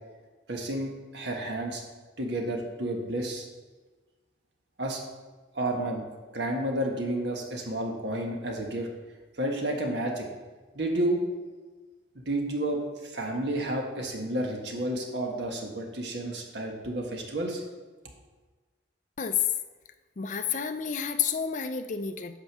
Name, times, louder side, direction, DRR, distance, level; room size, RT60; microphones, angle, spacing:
voice 1, 0.5-1.8 2.2-3.4 4.8-5.0 5.5-6.0 6.3-8.9 9.4-10.3 10.7-11.2 12.1-17.6, right 1 dB, 65° right, 1 dB, 1.4 m, -31 dB
voice 2, 20.2-22.4, left 7 dB, 40° left, 9 dB, 0.4 m, -30 dB
8.9 x 5.0 x 6.2 m, 1.3 s
head